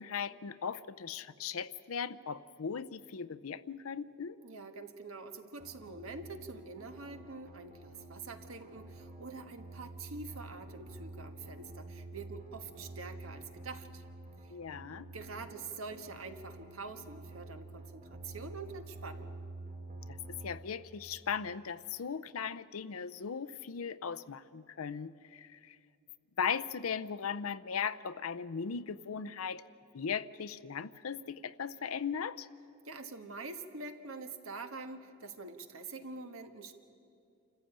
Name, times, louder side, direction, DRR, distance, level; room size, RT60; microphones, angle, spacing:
voice 1, 0.0-4.4 14.5-15.1 20.1-25.8 26.4-29.6 29.9-32.5, left 6 dB, 85° left, 15 dB, 0.6 m, -38 dB
voice 2, 4.4-14.0 14.4-14.5 15.1-19.4 32.8-36.7, right 3 dB, 80° right, 7 dB, 1.4 m, -45 dB
sound 1, 5.6-20.6, right 2 dB, 35° right, 2.0 m, -49 dB
27.0 x 14.5 x 8.8 m, 2.5 s
head